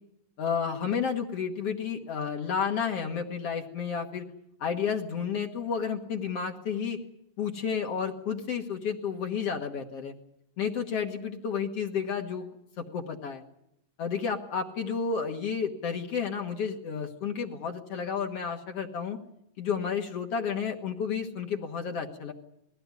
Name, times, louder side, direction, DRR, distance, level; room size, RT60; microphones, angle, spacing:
voice 1, 0.4-4.3 4.6-7.0 7.4-10.1 10.6-12.5 12.8-13.4 14.0-19.2 19.6-22.3, left 6 dB, 55° left, 3 dB, 2.2 m, -31 dB
21.0 x 16.5 x 9.6 m, 0.81 s
omnidirectional pair, 3.8 m